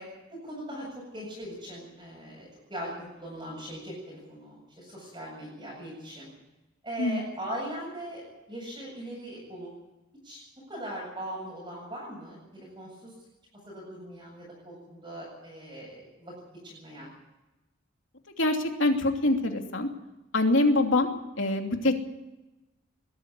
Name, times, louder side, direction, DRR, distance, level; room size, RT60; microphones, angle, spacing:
voice 1, 0.0-6.3 6.8-9.7 10.2-10.4 10.7-13.1 13.7-16.3 16.6-17.1, right 1 dB, 20° right, -4 dB, 7.8 m, -40 dB
voice 2, 18.4-19.9 20.3-21.1 21.4-22.0, left 2 dB, 70° left, 3 dB, 2.9 m, -24 dB
21.0 x 13.5 x 9.8 m, 1.0 s
head